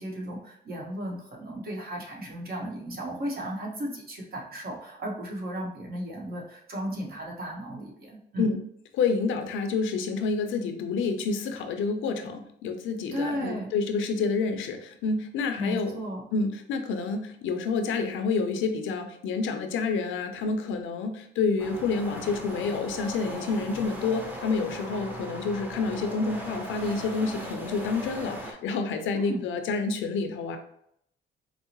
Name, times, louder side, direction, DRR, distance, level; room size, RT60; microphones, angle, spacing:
voice 1, 0.0-8.6 13.1-13.7 15.6-16.3 29.1-29.4, equal, 50° right, -1 dB, 1.2 m, -35 dB
voice 2, 8.9-15.9 16.3-30.6, left 4 dB, 80° left, 7 dB, 0.5 m, -28 dB
sound 1, 21.6-28.5, equal, 10° right, 0.7 m, -38 dB
4.5 x 2.0 x 2.9 m, 0.72 s
cardioid pair, 90°, 20 cm